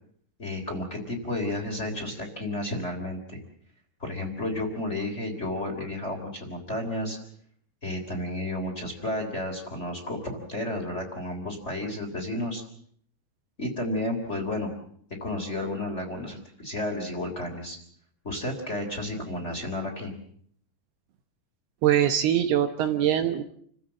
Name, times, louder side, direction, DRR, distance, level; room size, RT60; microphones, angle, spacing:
voice 1, 0.4-3.4 4.0-7.2 7.8-12.6 13.6-14.7 15.2-17.8 18.2-20.1, left 1 dB, 15° left, 2 dB, 3.3 m, -32 dB
voice 2, 21.8-23.4, right 10 dB, 70° right, 7 dB, 2.9 m, -23 dB
29.0 x 16.0 x 7.6 m, 0.64 s
omnidirectional pair, 5.2 m